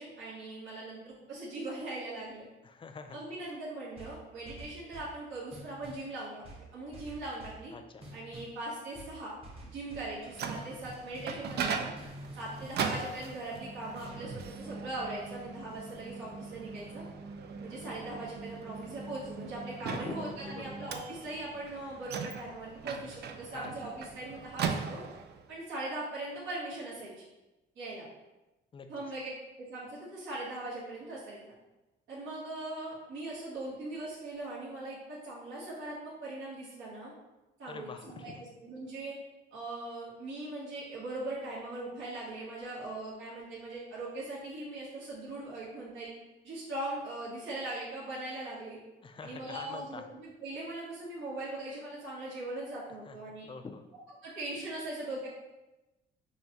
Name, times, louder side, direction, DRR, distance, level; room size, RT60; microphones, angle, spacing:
voice 1, 0.0-2.5 3.1-6.4 6.7-7.7 8.1-9.3 9.7-11.9 12.3-17.0 17.6-25.0 25.5-27.2 27.7-28.1 28.9-29.3 29.6-31.4 32.1-37.1 37.6-38.3 38.6-39.2 39.5-46.1 46.4-48.8 49.2-53.5 54.2-55.3, right 2 dB, 75° right, -9 dB, 1.4 m, -40 dB
voice 2, 2.6-3.2 7.7-8.1 19.9-20.9 23.5-23.8 28.7-28.9 37.7-38.4 49.0-50.0 53.1-53.2 53.5-53.9, left 4 dB, 25° left, 7 dB, 0.4 m, -44 dB
sound 1, 4.0-5.2 5.5-6.1 6.4-7.7 8.0-8.6 8.9-10.1 10.5-11.7 12.0-14.5, right 1 dB, 30° right, 1.1 m, -48 dB
Microwave oven, 10.0-25.5, right 6 dB, 55° right, 0.4 m, -40 dB
5.4 x 2.2 x 2.9 m, 1.0 s
cardioid pair, 90°, 20 cm